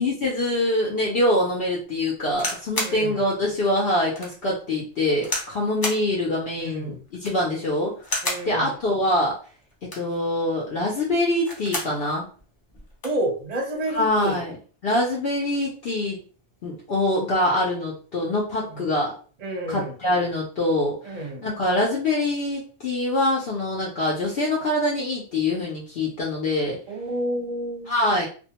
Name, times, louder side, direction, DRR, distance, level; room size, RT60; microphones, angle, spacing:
voice 1, 0.0-7.9 8.4-9.3 9.8-12.2 13.9-14.5 14.8-16.2 16.6-19.1 19.7-26.8 27.9-28.3, left 1 dB, 60° left, -3 dB, 0.8 m, -24 dB
sound 1, 2.4-3.0 3.6-3.7 4.2-4.3 5.2-5.5 5.8-6.1 7.1-7.5 8.0-8.5 9.7-10.2 11.3-12.0 12.4-12.5 12.7-13.2 14.1-14.3, left 1 dB, 30° left, 0.4 m, -30 dB
voice 2, 2.8-3.2 6.6-7.0 8.2-8.7 13.0-14.4 18.7-18.9 19.4-19.9 21.0-21.4 26.9-28.1, right 1 dB, 40° right, 2 dB, 0.7 m, -30 dB
2.4 x 2.2 x 2.8 m, 0.39 s
omnidirectional pair, 1.2 m